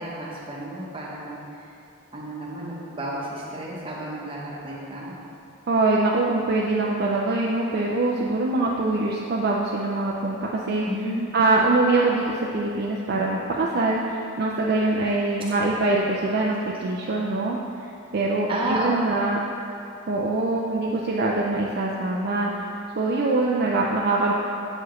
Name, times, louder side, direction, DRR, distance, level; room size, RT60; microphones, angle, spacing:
voice 1, 0.0-1.6 2.1-5.1 10.8-11.3 15.4-15.5 18.5-18.9, right 1 dB, 25° right, -5 dB, 0.9 m, -31 dB
voice 2, 5.7-10.8 11.3-17.6 18.1-19.4 20.1-22.5 22.9-24.3, right 2 dB, 45° right, -3 dB, 0.4 m, -23 dB
7.5 x 4.7 x 3.1 m, 2.7 s
head